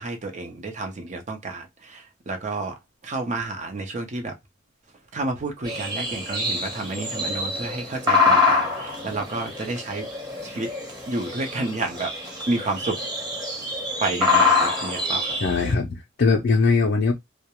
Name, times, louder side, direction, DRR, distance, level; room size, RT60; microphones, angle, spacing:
voice 1, 0.0-4.4 5.1-10.1 10.4-10.7 11.1-12.1 12.5-13.0 14.0-15.4, right 2 dB, 40° right, 0.6 m, -30 dB
sound 1, 5.7-15.7, left 3 dB, 20° right, 0.9 m, -25 dB
voice 2, 15.4-17.1, left 4 dB, 55° left, 0.4 m, -21 dB
2.3 x 2.1 x 2.9 m
head